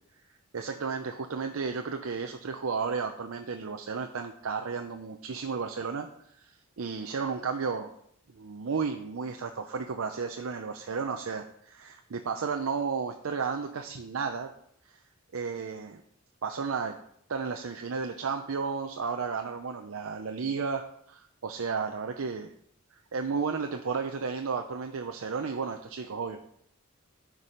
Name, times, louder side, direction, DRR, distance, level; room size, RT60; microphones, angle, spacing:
voice 1, 0.5-6.1 6.4-7.9 8.3-14.5 14.9-15.0 15.3-16.0 16.4-17.0 17.3-22.5 22.9-26.4, right 5 dB, 85° right, 5 dB, 0.6 m, -33 dB
9.8 x 4.7 x 5.4 m, 0.70 s
head